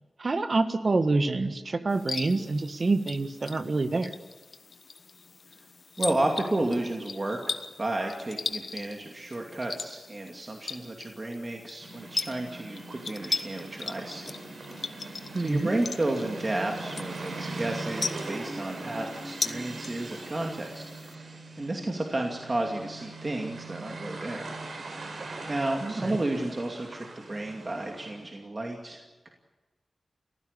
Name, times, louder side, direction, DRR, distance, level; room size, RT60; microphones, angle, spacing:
voice 1, 0.2-4.1 15.3-15.7 25.8-26.2, right 3 dB, 55° right, 9 dB, 1.6 m, -27 dB
sound 1, 1.9-21.1, left 4 dB, 65° left, 1.1 m, -39 dB
voice 2, 6.0-7.4 7.8-14.3 15.4-20.8 21.6-24.5 25.5-29.3, right 2 dB, 35° right, 1 dB, 2.5 m, -32 dB
sound 2, 11.8-28.3, right 2 dB, 85° right, 4.2 m, -41 dB
28.5 x 15.5 x 8.3 m, 1.2 s
wide cardioid pair, 75°, 0 cm